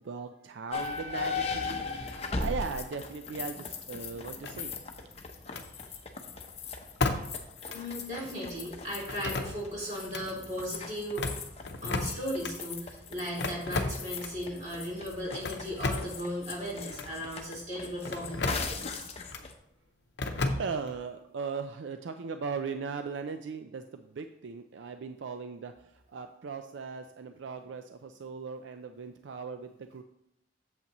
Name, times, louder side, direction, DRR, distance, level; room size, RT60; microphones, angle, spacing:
voice 1, 0.0-4.8 20.5-30.0, right 5 dB, 80° right, 8 dB, 0.4 m, -38 dB
sound 1, 0.7-19.5, left 4 dB, 35° left, 0.7 m, -39 dB
sound 2, 4.4-5.0 5.5-5.7 7.0-7.4 7.7-7.8 9.1-9.8 10.1-10.3 11.0-12.5 13.4-14.4 15.3-16.2 16.9-17.1 18.1-18.7 19.3-19.5 20.2-21.0, left 2 dB, 65° left, 0.7 m, -33 dB
voice 2, 7.7-11.3 11.8-19.1, equal, 40° right, -5 dB, 2.7 m, -37 dB
8.2 x 7.4 x 3.0 m, 0.79 s
head